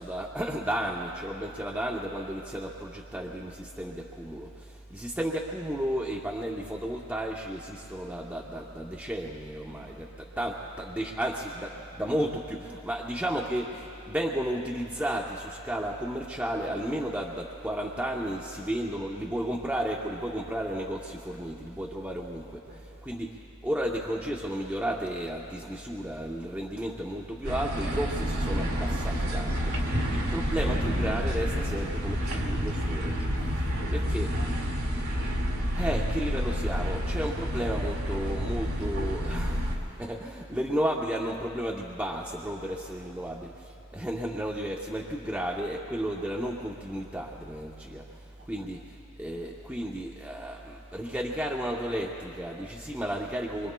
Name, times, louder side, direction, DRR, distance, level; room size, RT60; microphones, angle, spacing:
voice 1, 0.0-22.6 23.0-23.3 23.6-33.5 33.9-34.3 35.7-53.7, right 1 dB, 5° right, -2 dB, 0.7 m, -33 dB
voice 2, 9.6-10.0 10.6-10.7 18.2-18.7 22.7-23.1 29.9-30.3 33.3-34.7 42.6-43.2 48.4-48.8, right 1 dB, 50° right, -5 dB, 3.8 m, -50 dB
sound 1, 27.4-39.8, equal, 75° right, 2.0 m, -29 dB
26.5 x 24.0 x 2.3 m, 2.8 s
head